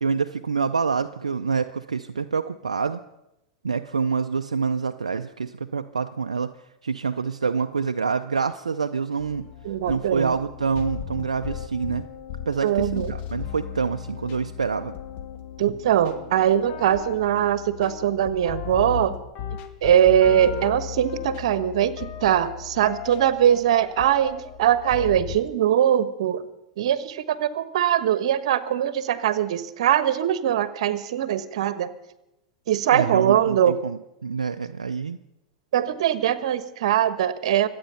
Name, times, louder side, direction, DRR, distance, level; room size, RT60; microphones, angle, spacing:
voice 1, 0.0-3.0 3.6-6.5 6.8-9.5 9.9-12.0 12.5-14.9 32.9-35.2, right 5 dB, 90° right, 9 dB, 0.5 m, -26 dB
sound 1, 9.2-25.4, left 9 dB, 45° left, 1.6 m, -36 dB
voice 2, 9.6-10.3 12.6-13.1 15.6-19.1 19.8-26.4 26.8-31.9 32.7-33.7 35.7-37.7, right 10 dB, 65° right, 14 dB, 1.2 m, -21 dB
25.0 x 8.6 x 5.6 m, 0.90 s
hypercardioid pair, 100°, 4 cm